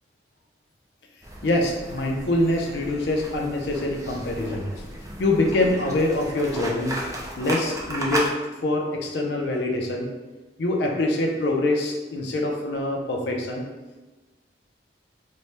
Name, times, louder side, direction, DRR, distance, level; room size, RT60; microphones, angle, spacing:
sound 1, 1.2-8.3, right 1 dB, 15° right, 0.4 m, -34 dB
voice 1, 1.4-4.7 5.2-7.0 7.4-8.3 8.6-10.1 10.6-13.6, left 2 dB, 60° left, 1 dB, 0.4 m, -24 dB
4.1 x 2.1 x 3.2 m, 1.2 s
head